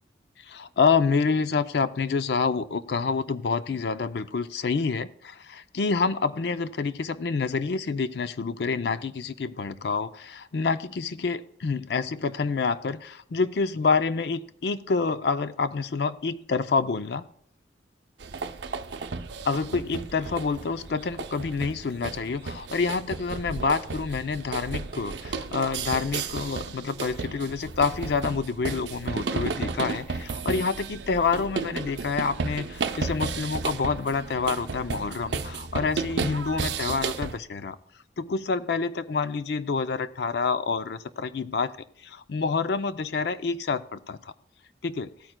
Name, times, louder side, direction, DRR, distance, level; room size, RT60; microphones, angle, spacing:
voice 1, 0.4-17.3 19.4-37.8 38.2-41.7 42.0-44.3 44.8-45.1, left 4 dB, 65° left, 12 dB, 0.5 m, -27 dB
sound 1, 18.2-37.4, right 4 dB, 75° right, 0.6 m, -33 dB
16.0 x 9.0 x 2.2 m, 0.64 s
head